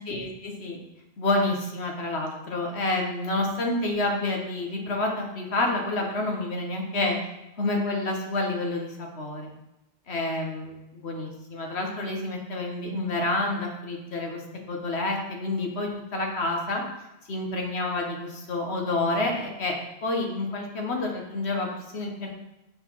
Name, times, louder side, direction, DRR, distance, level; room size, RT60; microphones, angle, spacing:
voice 1, 0.1-0.8 1.2-7.2 7.6-9.5 10.1-14.4 14.7-16.8 17.3-19.8 20.0-22.3, left 2 dB, 85° left, 1 dB, 1.6 m, -28 dB
6.4 x 6.0 x 4.6 m, 0.95 s
omnidirectional pair, 1.1 m